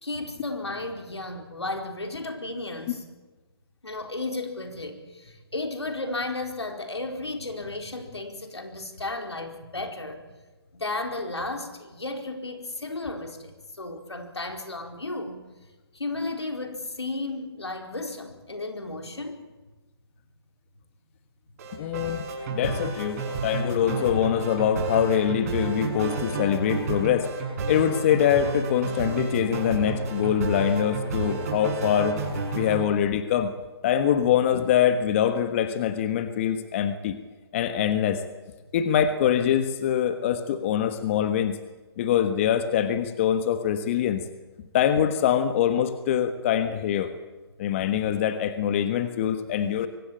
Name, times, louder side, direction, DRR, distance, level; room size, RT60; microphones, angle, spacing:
voice 1, 0.0-3.0 3.8-10.2 10.7-15.4 15.9-19.4, left 2 dB, 90° left, 4 dB, 4.5 m, -34 dB
sound 1, 21.6-32.8, right 4 dB, 35° right, 6.6 m, -31 dB
voice 2, 21.8-22.2 22.5-27.3 27.7-32.2 32.5-33.5 33.8-37.2 37.5-38.2 38.7-41.6 42.0-44.2 44.7-47.1 47.6-49.9, left 9 dB, 30° left, 10 dB, 1.4 m, -24 dB
24.0 x 16.5 x 8.9 m, 1.2 s
figure-of-eight pair, 150°, 14 cm